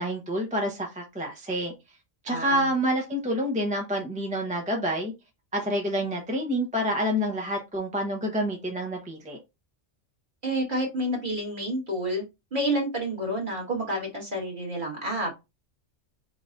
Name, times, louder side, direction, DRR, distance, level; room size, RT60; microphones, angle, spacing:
voice 1, 0.0-1.7 2.2-5.1 5.5-9.4, equal, 5° right, 0.9 m, -28 dB
voice 2, 2.3-2.7 10.4-12.2 12.5-15.3, right 1 dB, 40° right, 1.9 m, -29 dB
4.6 x 3.9 x 2.6 m
omnidirectional pair, 1.3 m